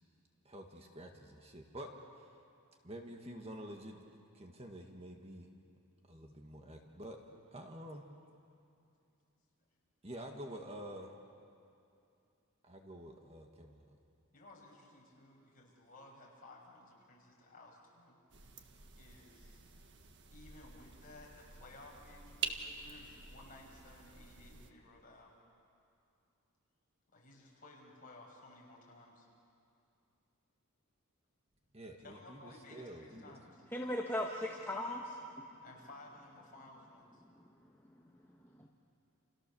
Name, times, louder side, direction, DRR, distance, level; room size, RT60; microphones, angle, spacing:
voice 1, 0.4-1.9 2.8-4.0 4.3-5.5 6.1-7.2 7.5-8.0 10.0-11.1 12.6-13.9 31.7-33.3, right 1 dB, 25° right, 2 dB, 1.8 m, -48 dB
voice 2, 14.3-18.2 19.0-19.6 20.3-25.3 27.1-29.3 32.0-33.6 35.6-37.2, left 2 dB, 40° left, -2 dB, 6.3 m, -57 dB
sound 1, 18.3-24.7, right 6 dB, 55° right, 1.6 m, -47 dB
voice 3, 33.7-35.2 38.6-38.7, left 1 dB, 10° left, -1 dB, 1.5 m, -37 dB
29.5 x 29.0 x 7.0 m, 2.6 s
head